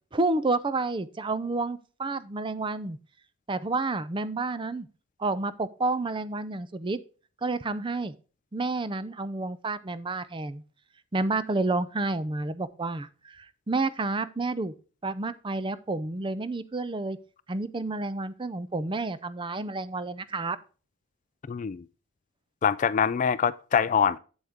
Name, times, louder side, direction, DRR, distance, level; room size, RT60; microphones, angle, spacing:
voice 1, 0.1-3.0 3.5-4.9 5.2-7.0 7.4-8.1 8.5-10.6 11.1-14.7 15.0-17.2 17.5-20.6, right 3 dB, 25° right, 0.5 m, -30 dB
voice 2, 21.5-21.8 22.6-24.2, left 7 dB, 35° left, 0.3 m, -24 dB
8.1 x 7.9 x 3.5 m
head